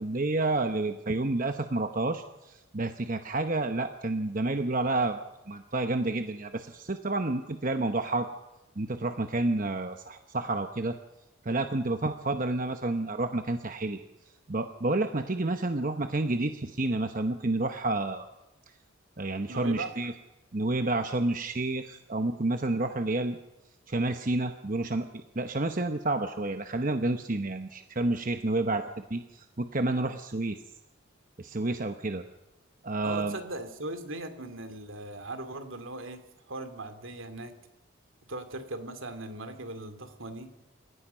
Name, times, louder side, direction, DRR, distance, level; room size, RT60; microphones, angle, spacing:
voice 1, 0.0-5.2 5.5-8.3 8.8-11.0 11.4-14.0 14.5-18.3 19.2-20.1 20.5-23.4 23.9-25.1 25.3-30.6 31.4-32.2 32.8-33.4, right 2 dB, 40° right, 7 dB, 0.9 m, -29 dB
voice 2, 19.5-19.9 33.0-37.6 38.3-40.5, right 2 dB, 70° right, 8 dB, 2.5 m, -39 dB
29.0 x 16.5 x 5.7 m, 0.99 s
head